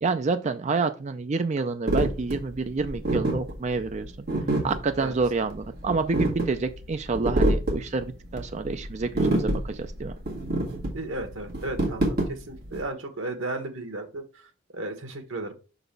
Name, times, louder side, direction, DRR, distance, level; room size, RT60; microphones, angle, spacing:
voice 1, 0.0-4.3 4.6-10.2, right 4 dB, 35° right, 0.4 m, -28 dB
sound 1, 1.9-12.8, right 1 dB, 50° right, 1.8 m, -27 dB
voice 2, 10.9-14.2 14.7-15.5, right 2 dB, 90° right, 1.3 m, -34 dB
5.9 x 4.0 x 5.3 m
head